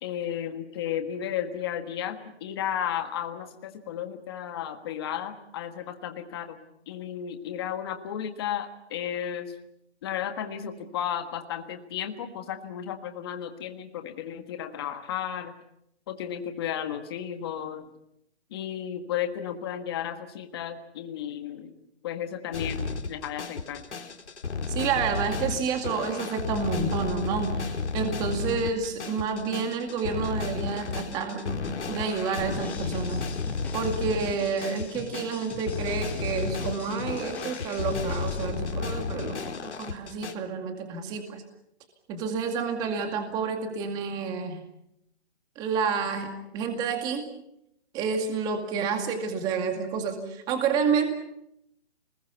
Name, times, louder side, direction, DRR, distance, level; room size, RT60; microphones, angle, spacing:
voice 1, 0.0-6.6 6.9-9.5 10.0-15.5 16.1-17.9 18.5-21.7 22.0-23.8, left 9 dB, 20° left, 7 dB, 1.5 m, -33 dB
sound 1, 22.5-40.3, left 4 dB, 80° left, 3.8 m, -33 dB
voice 2, 24.7-31.6 31.9-33.2 33.7-41.4 42.1-44.6 45.6-46.3 46.5-47.2 47.9-51.0, right 5 dB, 10° right, 5 dB, 2.2 m, -29 dB
sound 2, 32.5-38.5, left 5 dB, 5° left, 1.3 m, -44 dB
27.5 x 21.0 x 7.0 m, 0.78 s
hypercardioid pair, 170°, 34 cm